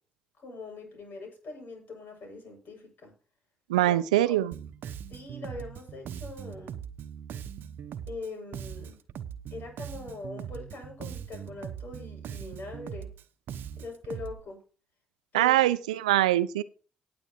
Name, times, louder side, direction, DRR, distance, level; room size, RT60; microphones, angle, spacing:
voice 1, 0.4-3.1 3.7-4.0 4.2-4.4 5.1-6.8 8.1-9.0 9.5-13.1 13.8-14.6 15.3-15.6, left 3 dB, 60° left, 2 dB, 7.3 m, -42 dB
voice 2, 3.7-4.5 15.3-16.6, right 14 dB, 85° right, 17 dB, 0.5 m, -23 dB
Bass guitar, 4.5-14.4, right 8 dB, 65° right, 0.8 m, -40 dB
19.0 x 7.9 x 3.1 m, 0.38 s
hypercardioid pair, 45°, 4 cm